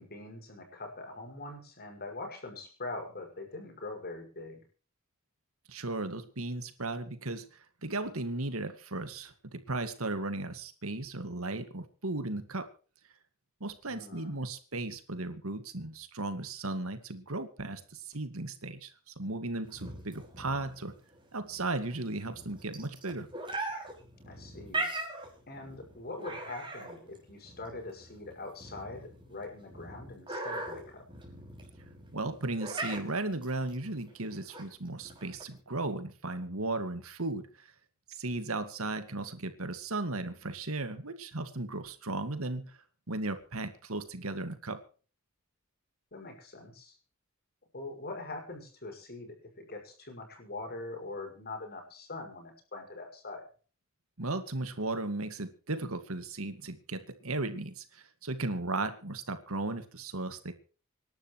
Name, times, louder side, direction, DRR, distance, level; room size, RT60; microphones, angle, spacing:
voice 1, 0.0-4.6 13.9-14.5 24.2-24.9 25.5-31.1 46.1-47.0 47.7-53.5, left 2 dB, 50° left, 3 dB, 6.3 m, -43 dB
voice 2, 5.7-7.5 7.8-12.7 13.6-20.9 21.3-23.3 32.1-37.7 38.1-42.8 43.1-44.8 54.2-60.5, right 2 dB, 70° right, 10 dB, 2.1 m, -36 dB
sound 1, 19.7-35.6, right 2 dB, 25° right, 6.4 m, -41 dB
26.5 x 12.0 x 3.2 m, 0.39 s
head